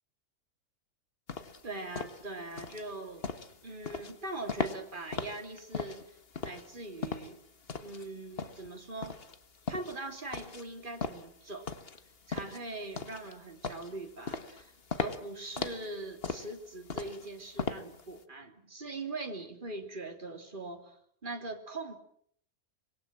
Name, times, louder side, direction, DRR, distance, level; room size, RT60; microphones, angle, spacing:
sound 1, 1.3-18.2, left 5 dB, 40° left, 1.6 m, -39 dB
voice 1, 1.6-3.3 3.6-6.2 6.4-7.4 7.8-9.2 9.7-11.7 12.3-14.7 15.0-22.0, right 2 dB, 30° right, 4 dB, 3.3 m, -41 dB
25.5 x 21.5 x 7.5 m, 0.65 s
omnidirectional pair, 1.6 m